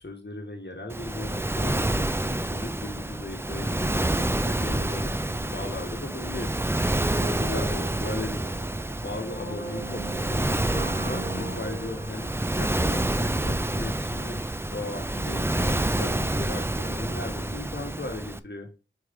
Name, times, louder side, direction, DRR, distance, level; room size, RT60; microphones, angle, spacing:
voice 1, 0.0-6.6 7.2-8.6 8.9-18.7, left 2 dB, 55° left, 1 dB, 1.2 m, -37 dB
Waves surf, 0.9-18.4, right 1 dB, 10° right, 0.4 m, -28 dB
Brass instrument, 6.7-13.6 13.9-14.0, right 2 dB, 60° right, 3.4 m, -39 dB
4.7 x 4.7 x 5.1 m, 0.32 s
wide cardioid pair, 40°, 21 cm